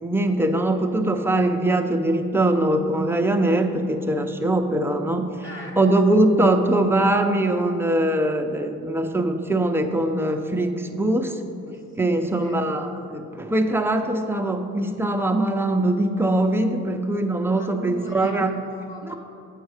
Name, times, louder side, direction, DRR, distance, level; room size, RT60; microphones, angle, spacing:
voice 1, 0.0-5.3 5.8-11.4 12.0-18.5 19.0-19.1, right 1 dB, 10° right, 5 dB, 0.6 m, -22 dB
voice 2, 5.4-5.8 11.6-12.6 17.5-19.1, left 2 dB, 40° left, -1 dB, 1.6 m, -39 dB
8.0 x 4.6 x 6.5 m, 2.6 s
cardioid pair, 90°, 30 cm